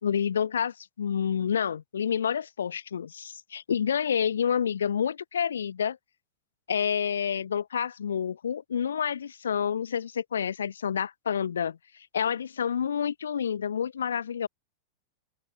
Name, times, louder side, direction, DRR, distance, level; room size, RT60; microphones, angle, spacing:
voice 1, 0.0-6.0 6.7-11.8 12.1-14.5, left 8 dB, 70° left, 3.2 m, -28 dB
open air
figure-of-eight pair, 90°, 0 cm